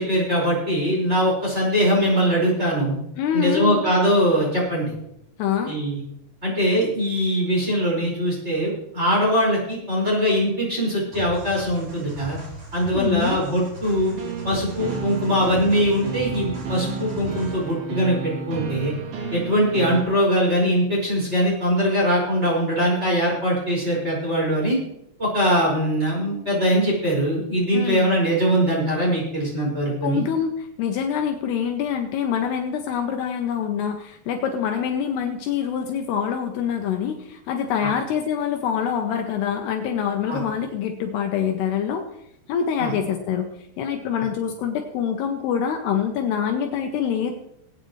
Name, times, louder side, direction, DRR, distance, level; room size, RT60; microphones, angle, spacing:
voice 1, 0.0-3.0 3.3-4.9 5.7-6.0 6.4-12.4 12.7-14.2 14.4-18.9 19.3-24.8 25.2-30.2 37.8-37.9 40.3-40.4 42.8-42.9, equal, 15° right, -5 dB, 5.2 m, -22 dB
voice 2, 3.2-3.8 5.4-5.7 12.9-13.5 27.7-28.1 30.0-42.1 42.5-43.5 43.8-47.3, left 8 dB, 75° left, 4 dB, 2.7 m, -25 dB
sound 1, 11.1-17.7, right 2 dB, 35° right, 4.6 m, -39 dB
sound 2, 13.8-20.0, right 5 dB, 60° right, 3.5 m, -32 dB
21.5 x 8.8 x 3.1 m, 0.77 s
omnidirectional pair, 5.0 m